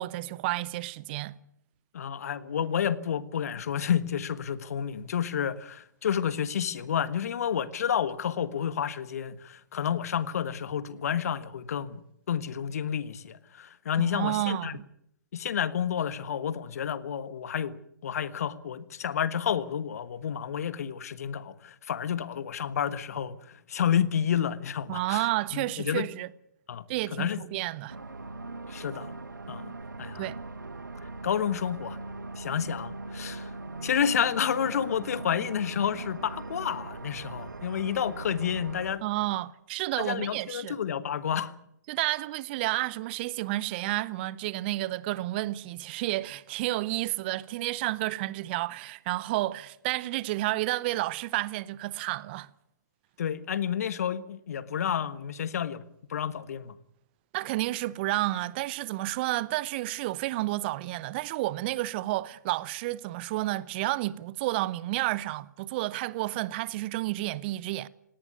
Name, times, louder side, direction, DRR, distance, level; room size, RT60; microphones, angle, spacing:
voice 1, 0.0-1.4 14.0-14.8 24.9-26.3 26.9-28.0 30.1-30.4 39.0-40.8 41.9-52.5 57.3-67.9, right 17 dB, 35° right, 0.7 m, -31 dB
voice 2, 1.9-12.0 12.3-14.7 15.3-17.8 18.0-25.2 25.5-26.1 26.7-26.8 27.1-27.4 28.7-29.1 29.5-29.7 30.0-30.2 31.2-32.0 32.4-33.5 33.8-39.0 40.0-41.5 53.2-55.8 56.1-56.7, left 8 dB, 55° left, 1.3 m, -30 dB
sound 1, 27.9-39.0, right 2 dB, 80° right, 1.3 m, -40 dB
18.5 x 18.0 x 9.3 m
figure-of-eight pair, 125°, 10 cm